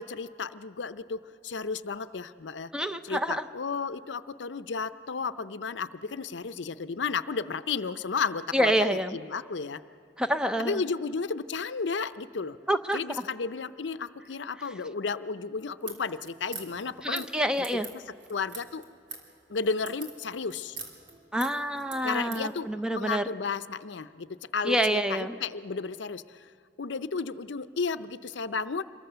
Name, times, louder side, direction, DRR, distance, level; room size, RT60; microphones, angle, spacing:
voice 1, 0.0-2.7 3.0-9.8 10.6-12.6 12.9-17.3 17.7-18.0 18.3-18.8 19.5-20.8 22.0-26.5 26.8-28.8, left 5 dB, 85° left, 12 dB, 0.6 m, -33 dB
voice 2, 2.7-3.4 8.5-9.2 10.2-10.8 12.7-13.0 17.0-17.9 21.3-23.3 24.6-25.4, equal, 5° right, 9 dB, 0.6 m, -27 dB
sound 1, 15.8-22.5, right 4 dB, 85° right, 3.4 m, -44 dB
27.0 x 22.5 x 6.9 m, 2.6 s
head